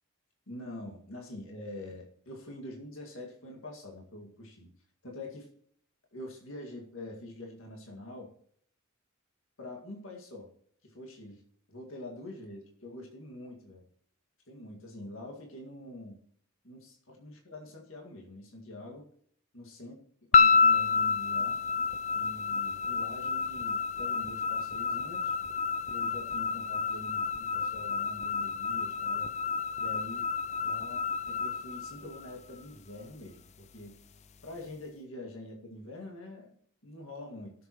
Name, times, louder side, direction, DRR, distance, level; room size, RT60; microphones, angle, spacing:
voice 1, 0.5-4.7 5.0-5.5 6.1-8.3 9.6-10.5 10.8-11.4 11.7-13.8 14.5-16.2 16.6-19.1 19.5-20.0 20.3-21.6 22.1-25.4 25.9-29.3 29.8-30.3 30.6-34.0 34.4-36.5 36.8-37.5, left 1 dB, 60° left, 1 dB, 2.0 m, -45 dB
sound 1, 20.3-32.6, left 5 dB, 30° left, 0.4 m, -29 dB
16.5 x 7.0 x 3.1 m, 0.63 s
head